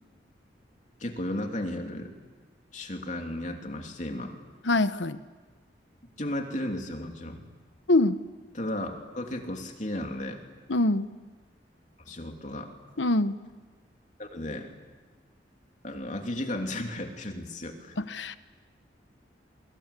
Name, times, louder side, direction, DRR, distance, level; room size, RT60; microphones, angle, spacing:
voice 1, 1.0-2.1 2.7-4.3 6.2-7.4 8.5-10.4 12.1-12.7 14.2-14.7 15.8-17.9, left 1 dB, 40° left, 3 dB, 3.0 m, -34 dB
voice 2, 4.6-5.2 7.9-8.2 10.7-11.1 13.0-13.4 18.0-18.4, left 2 dB, 85° left, 12 dB, 1.1 m, -24 dB
29.5 x 24.0 x 8.4 m, 1.3 s
head